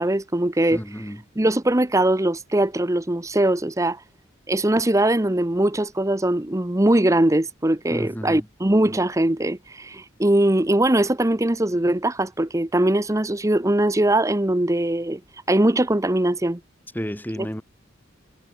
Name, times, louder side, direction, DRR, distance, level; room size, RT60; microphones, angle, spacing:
voice 1, 0.0-0.8 1.4-4.0 4.5-15.2 15.5-16.6 17.4-17.5, right 1 dB, 15° right, 0.8 m, -21 dB
voice 2, 0.7-1.2 7.9-8.4 16.9-17.6, equal, 10° left, 5.4 m, -31 dB
head